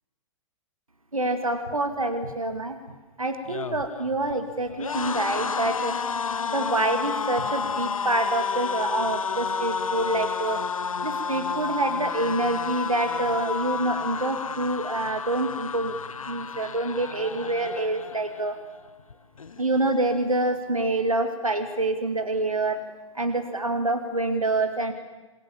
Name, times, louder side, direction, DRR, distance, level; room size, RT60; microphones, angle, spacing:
voice 1, 1.1-2.8 3.2-5.9 6.4-10.6 11.0-16.0 16.3-18.6 19.6-22.8 23.1-24.9, right 2 dB, 85° right, 7 dB, 2.2 m, -26 dB
sound 1, 3.3-18.5 18.9-19.1 19.4-20.2, left 5 dB, 75° left, 0.9 m, -31 dB
28.5 x 22.0 x 7.2 m, 1.2 s
figure-of-eight pair, 115°, 17 cm